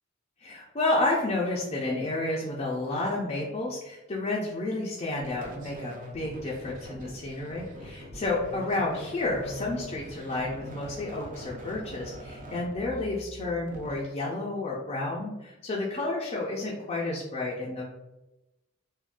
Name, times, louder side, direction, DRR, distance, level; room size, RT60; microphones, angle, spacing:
voice 1, 0.4-17.8, left 2 dB, 30° left, -3 dB, 0.4 m, -31 dB
sound 1, 5.2-14.0, right 1 dB, 40° right, 0.5 m, -43 dB
3.5 x 2.2 x 2.4 m, 0.98 s
head